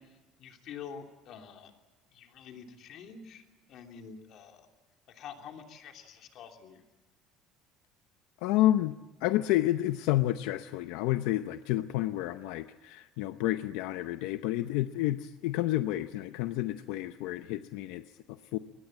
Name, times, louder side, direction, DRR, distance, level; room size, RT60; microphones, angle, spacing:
voice 1, 0.4-1.7 2.1-3.4 3.7-4.7 5.1-6.8, left 7 dB, 50° left, 3 dB, 3.0 m, -47 dB
voice 2, 8.4-18.6, left 15 dB, 85° left, 10 dB, 0.7 m, -30 dB
22.5 x 19.5 x 8.8 m, 1.1 s
cardioid pair, 155°, 0 cm